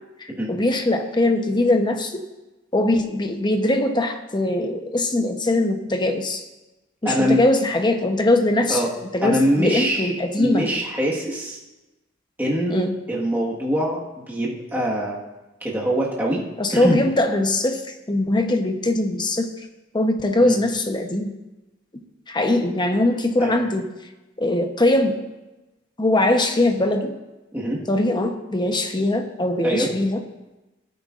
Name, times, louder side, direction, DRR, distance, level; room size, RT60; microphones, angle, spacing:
voice 1, 0.2-2.2 2.7-6.4 7.0-8.8 9.1-10.7 12.7-13.0 16.6-19.5 19.9-21.3 22.3-23.9 24.4-25.2 26.0-27.2 27.9-30.2, left 2 dB, 20° left, 5 dB, 0.9 m, -21 dB
voice 2, 7.0-7.4 8.7-8.9 9.2-10.1 10.4-11.6 12.4-15.2 15.6-16.4 16.7-17.0 20.4-20.6 23.4-23.6 27.5-27.8 29.6-29.9, equal, 10° right, -5 dB, 1.5 m, -23 dB
17.0 x 9.2 x 2.5 m, 1.1 s
head